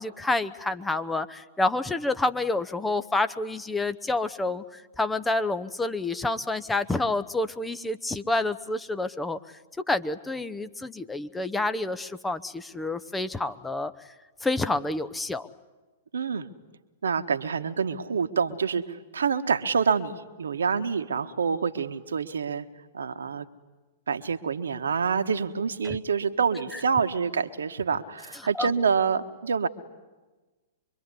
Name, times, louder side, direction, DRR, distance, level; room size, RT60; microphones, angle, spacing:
voice 1, 0.0-9.4 9.9-13.9 14.4-15.5 25.8-26.0 26.7-26.8 28.5-28.7, left 2 dB, 10° left, 11 dB, 0.9 m, -28 dB
voice 2, 16.1-16.5 17.0-22.7 22.9-23.4 24.1-29.7, right 6 dB, 75° right, 9 dB, 1.4 m, -27 dB
25.0 x 23.5 x 9.9 m, 1.2 s
figure-of-eight pair, 105°, 0 cm